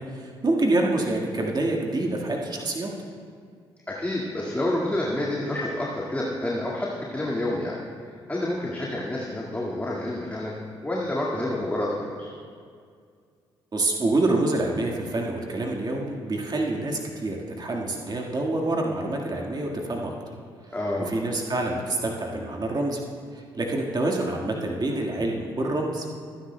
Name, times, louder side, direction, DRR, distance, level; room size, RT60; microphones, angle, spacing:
voice 1, 0.0-2.9 13.7-20.2 20.6-20.8 21.1-23.0 23.3-26.2, right 2 dB, 30° right, 0 dB, 1.7 m, -27 dB
voice 2, 3.9-7.8 8.3-10.5 10.8-12.3 20.7-21.1, left 1 dB, 15° left, -4 dB, 1.9 m, -28 dB
27.0 x 10.0 x 2.2 m, 2.2 s
figure-of-eight pair, 40°, 13 cm